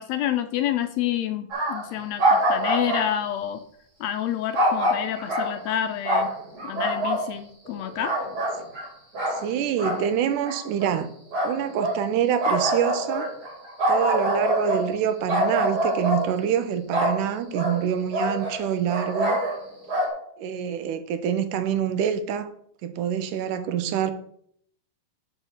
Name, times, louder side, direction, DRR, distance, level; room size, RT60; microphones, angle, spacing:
voice 1, 0.0-3.6 4.0-6.3 6.6-8.1, left 11 dB, 85° left, 1.5 m, -28 dB
Atmosphere with crickets and dogs at night (rural land), 1.5-1.9 2.2-3.1 4.5-5.7 6.0-7.2 7.7-8.9 9.1-9.4 9.8-10.1 10.4-10.9 11.3-12.0 12.4-15.0 15.3-16.3 16.9-17.2 17.5-17.8 18.1-19.6 19.9-20.1, right 1 dB, 40° right, 3.7 m, -25 dB
voice 2, 9.3-11.1 11.4-13.3 13.9-19.4 20.4-22.5 22.8-24.1, right 9 dB, 85° right, 2.3 m, -26 dB
6.3 x 5.7 x 6.6 m
omnidirectional pair, 3.5 m